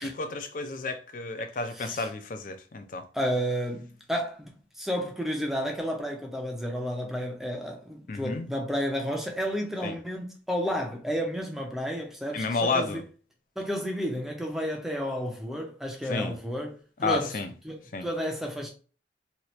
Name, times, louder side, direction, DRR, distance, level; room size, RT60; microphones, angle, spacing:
voice 1, 0.0-3.0 8.1-8.5 9.8-9.9 12.3-13.0 16.1-16.3 17.0-17.5 17.9-18.1, left 3 dB, 50° left, 0.5 m, -31 dB
voice 2, 1.8-2.1 3.1-13.0 13.6-17.4 17.6-18.7, equal, ahead, 0.5 m, -31 dB
2.9 x 2.4 x 3.0 m
head